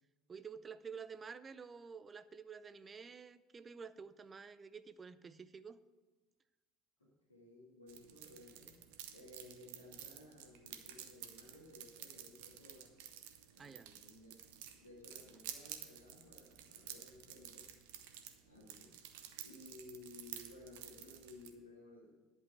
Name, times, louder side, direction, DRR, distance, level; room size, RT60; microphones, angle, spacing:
voice 1, 0.3-5.8 13.6-13.9, right 6 dB, 25° right, 14 dB, 0.6 m, -50 dB
voice 2, 7.0-8.8 9.1-12.9 13.5-17.7 18.5-18.9 19.4-22.1, left 2 dB, 90° left, -3 dB, 2.5 m, -57 dB
sound 1, 7.9-21.5, right 10 dB, 65° right, 0.9 m, -52 dB
11.0 x 5.5 x 7.6 m, 1.2 s
figure-of-eight pair, 65°, 0 cm